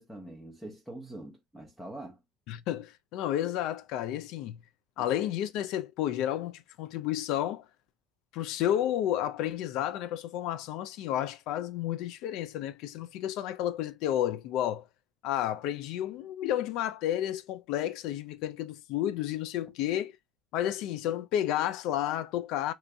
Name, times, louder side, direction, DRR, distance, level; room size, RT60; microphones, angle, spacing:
voice 1, 0.0-2.2 5.0-5.1, right 1 dB, 5° left, 0.8 m, -44 dB
voice 2, 2.5-4.6 5.0-7.6 8.3-14.9 15.2-20.2 20.5-22.7, left 11 dB, 70° left, 0.3 m, -31 dB
2.9 x 2.6 x 3.4 m
supercardioid pair, 100°, 0 cm